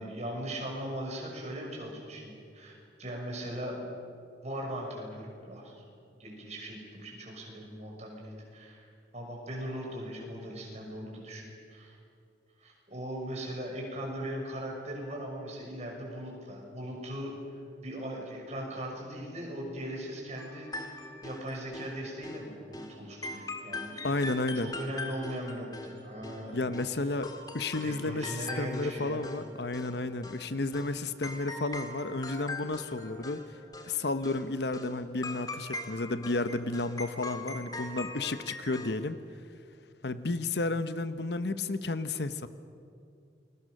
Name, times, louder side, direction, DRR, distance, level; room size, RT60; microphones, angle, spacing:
voice 1, 0.0-3.9 4.4-8.9 9.1-11.4 11.7-12.0 12.6-24.2 24.5-26.8 27.8-29.3, equal, 40° right, -1 dB, 6.3 m, -39 dB
sound 1, 20.4-21.9 22.2-22.4 22.7-22.9 23.2-26.9 27.2-29.5 29.7-30.4 30.7-30.9 31.2-33.5 33.7-33.9 34.2-34.4 34.7-34.9 35.2-39.0, left 2 dB, 20° left, 2.0 m, -42 dB
voice 2, 24.0-24.8 26.5-33.4 33.9-39.2 40.0-42.5, left 2 dB, 65° left, 12 dB, 1.0 m, -32 dB
29.0 x 22.0 x 6.6 m, 2.4 s
head